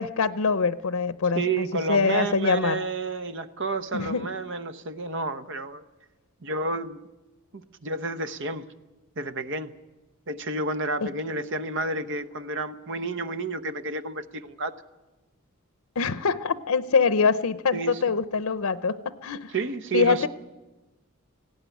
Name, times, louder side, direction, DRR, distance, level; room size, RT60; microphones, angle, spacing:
voice 1, 0.0-2.8 3.9-4.3 11.0-11.1 16.0-19.5 19.9-20.3, left 5 dB, 90° left, 0.6 m, -24 dB
voice 2, 1.3-5.8 6.4-7.0 7.5-8.7 9.2-9.7 10.3-14.7 17.7-18.0 19.5-20.3, right 3 dB, 60° right, 1.0 m, -30 dB
18.5 x 16.0 x 9.2 m
head